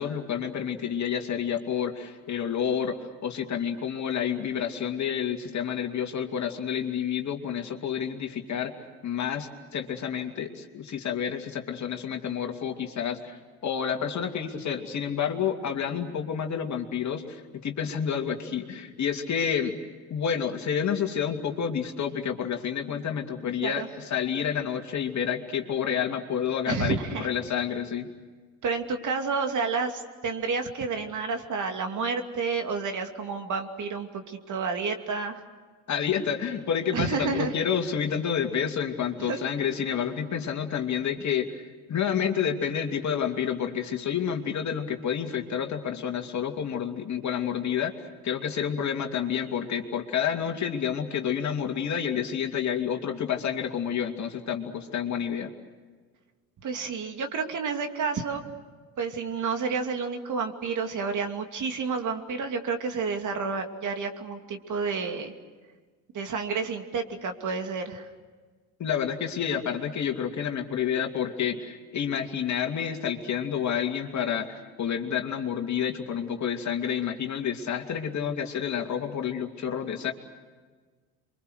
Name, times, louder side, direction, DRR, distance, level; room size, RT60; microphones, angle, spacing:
voice 1, 0.0-3.0 3.2-8.7 9.0-19.8 20.1-27.0 27.2-28.1 35.9-48.0 48.2-55.5 68.8-80.1, left 8 dB, 40° left, 4 dB, 2.7 m, -29 dB
voice 2, 26.7-27.3 28.6-35.4 36.9-37.5 39.2-39.4 56.6-58.4 59.0-65.3 66.1-68.1, right 5 dB, 45° right, 5 dB, 2.7 m, -30 dB
28.0 x 24.0 x 6.5 m, 1.4 s
hypercardioid pair, 75°, 41 cm